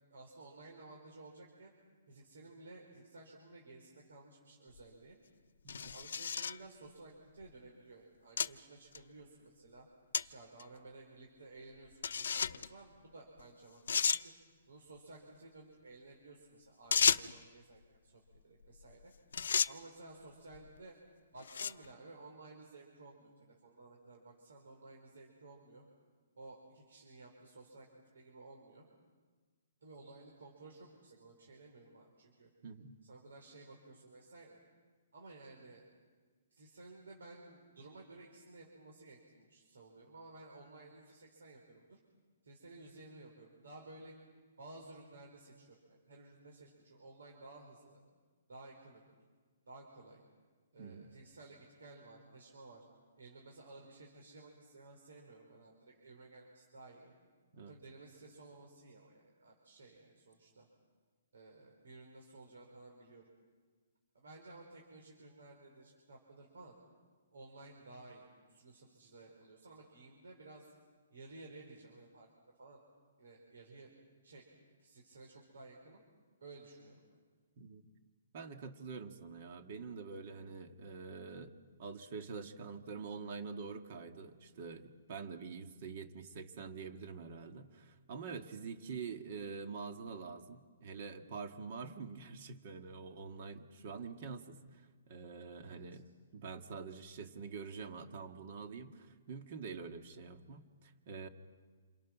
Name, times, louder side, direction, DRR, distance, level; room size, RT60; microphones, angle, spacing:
voice 1, 0.1-1.7 2.1-5.2 5.8-9.9 10.2-14.3 14.7-19.1 19.6-21.0 21.3-25.8 26.4-27.9 28.1-28.9 29.8-32.5 33.0-34.6 35.1-35.9 36.5-42.0 42.4-44.1 44.6-48.0 48.5-49.1 49.7-50.2 50.7-52.9 53.2-57.1 57.5-60.7 61.3-63.3 64.1-66.8 67.3-70.7 71.1-72.3 72.6-72.8 73.2-73.9 74.2-74.4 74.8-76.0 76.4-77.2 95.6-96.0, right 2 dB, 90° right, 0 dB, 4.4 m, -55 dB
sound 1, 4.8-4.9 5.7-6.6 7.4-7.5 8.4-8.5 8.9-9.0 10.1-10.2 10.6-10.7 12.0-12.7 13.4-13.5 13.9-14.2 16.9-17.4 18.8-19.0 19.3-19.7 20.5-20.8 21.4-21.9, left 6 dB, 75° left, 0.7 m, -32 dB
voice 2, 32.6-33.0 50.8-51.1 57.5-57.7 77.6-77.8 78.3-96.0 96.3-101.3, right 5 dB, 40° right, 7 dB, 1.8 m, -46 dB
28.0 x 27.0 x 6.1 m, 1.5 s
hypercardioid pair, 165°, 0 cm